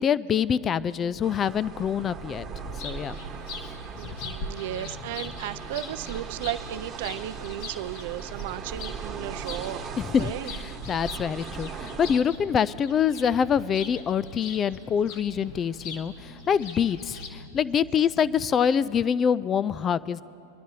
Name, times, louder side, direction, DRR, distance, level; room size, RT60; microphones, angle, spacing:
voice 1, 0.0-2.4 2.8-3.2 4.2-4.3 10.0-20.2, left 7 dB, 30° left, 19 dB, 0.3 m, -25 dB
sound 1, 0.5-18.7, left 1 dB, 75° left, 1.6 m, -48 dB
sound 2, 1.2-12.2, right 6 dB, 30° right, 1.4 m, -39 dB
sound 3, 2.6-17.3, left 4 dB, 60° left, 1.5 m, -43 dB
voice 2, 4.0-9.9 10.2-10.5, right 13 dB, 60° right, 13 dB, 0.4 m, -35 dB
23.5 x 11.5 x 2.8 m, 2.9 s
hypercardioid pair, 105°, 0 cm